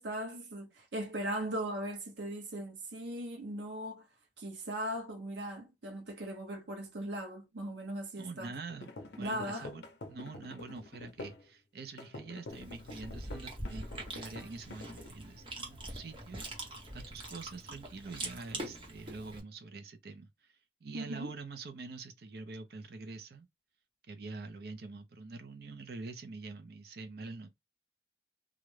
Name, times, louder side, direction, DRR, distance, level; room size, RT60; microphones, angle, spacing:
voice 1, 0.0-4.1 4.4-8.5 9.2-9.7 20.9-21.4, right 1 dB, 85° right, 0.8 m, -39 dB
voice 2, 8.2-20.6 20.8-23.5 24.1-27.5, right 3 dB, 60° right, 0.5 m, -46 dB
sound 1, 8.7-11.5 12.0-15.1, left 2 dB, 70° left, 0.5 m, -47 dB
Chewing mastication, 12.5-19.4, right 1 dB, 30° right, 0.8 m, -43 dB
2.4 x 2.1 x 3.1 m
head